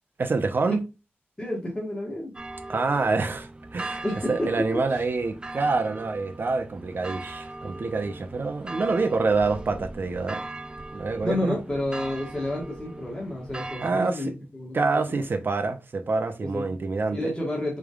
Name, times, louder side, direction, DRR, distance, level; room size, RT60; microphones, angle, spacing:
voice 1, 0.2-0.8 2.7-10.4 10.9-11.6 13.8-14.2 14.7-17.3, right 3 dB, 55° right, 0.8 m, -26 dB
voice 2, 1.4-2.3 4.0-4.5 4.9-5.0 11.2-14.7 16.4-16.7 17.1-17.8, left 1 dB, 20° left, 1.6 m, -30 dB
sound 1, 2.3-13.9, right 2 dB, 20° right, 0.3 m, -39 dB
5.0 x 3.4 x 2.4 m
wide cardioid pair, 100°, 4 cm